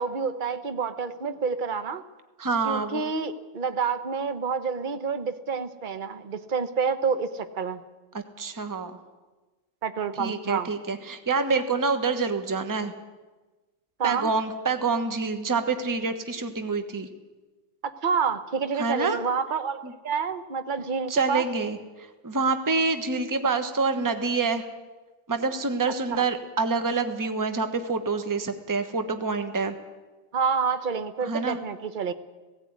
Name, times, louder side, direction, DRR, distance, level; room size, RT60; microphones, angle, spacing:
voice 1, 0.0-2.0 2.6-7.8 9.8-10.7 14.0-14.3 17.8-21.5 26.1-26.2 30.3-32.1, right 5 dB, 35° right, 11 dB, 0.8 m, -28 dB
voice 2, 2.4-3.0 8.1-9.0 10.2-12.9 14.0-17.1 18.8-19.2 19.8-19.9 21.1-24.6 25.3-29.7 31.2-31.6, right 4 dB, 15° right, 8 dB, 1.0 m, -27 dB
16.5 x 16.5 x 9.6 m, 1.2 s
omnidirectional pair, 2.0 m